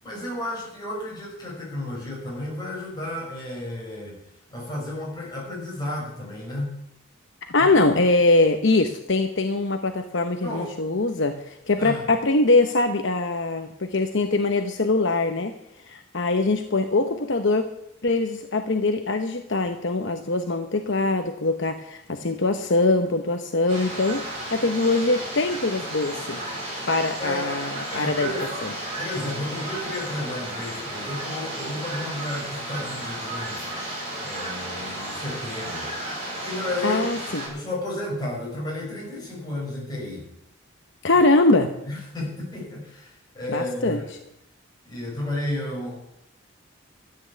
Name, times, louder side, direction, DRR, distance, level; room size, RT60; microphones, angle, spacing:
voice 1, 0.0-4.2 4.5-6.8 7.6-7.7 10.4-10.7 11.8-12.0 27.2-27.5 27.9-28.5 29.0-35.9 36.4-37.0 37.4-40.3 41.1-41.2 41.8-44.0 44.9-46.0, left 1 dB, 20° left, -4 dB, 6.2 m, -32 dB
voice 2, 7.5-15.5 15.9-17.6 18.0-24.2 24.5-26.4 26.9-28.3 28.6-28.7 36.8-37.4 41.0-41.7 43.5-44.0, left 2 dB, 55° left, 6 dB, 0.9 m, -22 dB
sound 1, 23.7-37.5, right 1 dB, 30° right, 5.6 m, -33 dB
13.5 x 8.8 x 8.2 m, 0.81 s
head